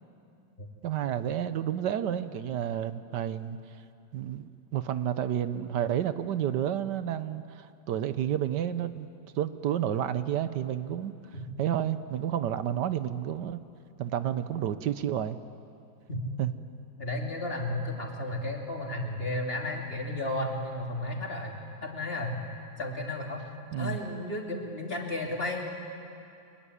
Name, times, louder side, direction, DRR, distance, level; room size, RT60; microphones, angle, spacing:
voice 1, 0.8-3.6 4.1-9.1 9.4-11.1 11.6-13.6 14.0-15.4 16.4-16.5 23.7-24.0, right 10 dB, 80° right, 12 dB, 1.4 m, -30 dB
voice 2, 17.0-22.4 22.8-23.4 23.8-25.7, left 1 dB, 35° left, 0 dB, 3.2 m, -33 dB
25.0 x 22.0 x 9.9 m, 2.6 s
omnidirectional pair, 1.9 m